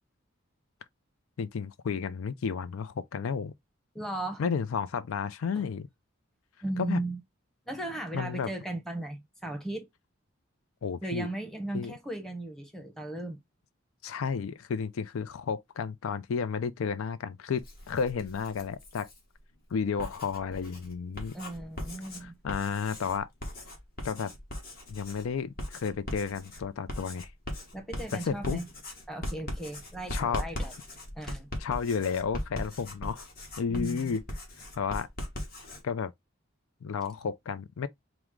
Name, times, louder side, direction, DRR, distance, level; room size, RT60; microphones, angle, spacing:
voice 1, 1.4-3.5 4.4-5.9 6.8-7.0 8.1-8.5 10.8-11.3 11.7-11.9 14.0-19.1 19.7-21.3 22.2-23.3 24.0-24.3 24.9-27.3 28.1-28.6 30.1-30.4 31.6-33.3 33.6-34.2 34.8-35.1 35.8-36.1 36.8-37.9, left 6 dB, 80° left, 0.4 m, -32 dB
voice 2, 3.9-4.4 5.6-5.7 6.6-7.2 7.7-9.9 11.0-13.4 21.3-22.4 27.7-28.7 29.1-30.7 31.2-31.5 33.7-34.2, right 2 dB, ahead, 0.8 m, -36 dB
Writing, 17.6-19.2 19.8-35.8, left 1 dB, 45° left, 1.2 m, -39 dB
4.6 x 2.1 x 3.5 m
head